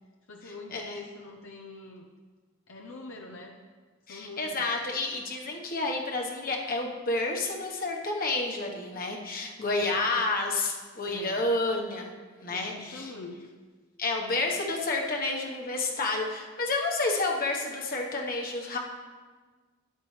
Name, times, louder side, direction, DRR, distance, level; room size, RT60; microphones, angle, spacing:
voice 1, 0.3-2.1 2.7-3.5 4.1-4.6 9.8-10.1 11.1-11.4 12.5-13.4, left 2 dB, 75° left, 1 dB, 0.8 m, -44 dB
voice 2, 4.1-12.1 12.4-13.1 14.0-18.8, left 2 dB, 45° left, 1 dB, 1.3 m, -30 dB
12.5 x 9.6 x 3.3 m, 1.4 s
head